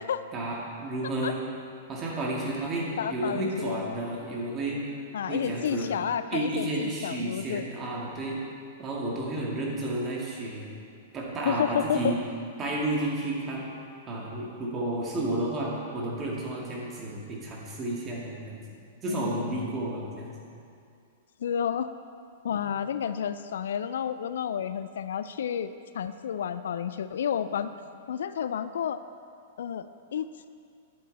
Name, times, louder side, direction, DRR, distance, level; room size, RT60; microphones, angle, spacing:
voice 1, 0.3-1.4 1.9-4.8 5.3-6.0 6.3-8.4 8.8-10.7 11.1-12.2 12.6-13.7 14.1-18.6 19.0-20.3 22.5-22.6, right 1 dB, 25° right, -3 dB, 2.4 m, -31 dB
voice 2, 3.0-4.0 5.1-7.6 11.4-12.1 19.1-19.8 21.4-21.9 22.4-27.7 28.1-29.0 29.6-30.5, left 8 dB, 70° left, 13 dB, 0.3 m, -31 dB
11.0 x 8.3 x 4.2 m, 2.4 s
hypercardioid pair, 105°, 0 cm